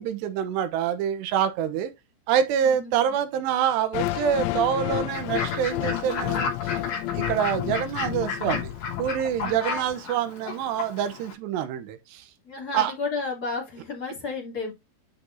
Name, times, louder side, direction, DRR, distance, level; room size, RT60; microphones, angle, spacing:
voice 1, 0.0-1.9 2.3-6.7 7.2-8.7 9.0-12.2 12.7-12.9, right 9 dB, 85° right, 3.0 m, -26 dB
voice 2, 2.6-3.1 9.4-9.6 12.4-14.7, left 4 dB, 25° left, 2.9 m, -32 dB
sound 1, 3.9-10.0, left 15 dB, 85° left, 2.8 m, -31 dB
Fowl / Bird, 5.1-11.3, left 4 dB, 60° left, 5.1 m, -33 dB
12.0 x 5.2 x 2.7 m
omnidirectional pair, 5.0 m